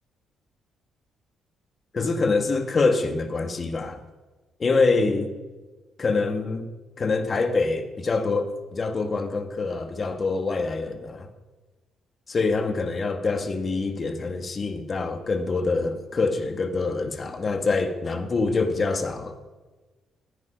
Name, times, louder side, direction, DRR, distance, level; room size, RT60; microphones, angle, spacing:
voice 1, 1.9-4.0 4.6-5.3 6.0-6.7 7.0-11.3 12.3-19.4, left 3 dB, 40° left, 7 dB, 1.6 m, -25 dB
16.0 x 9.2 x 5.2 m, 1.2 s
cardioid pair, 90°, 0 cm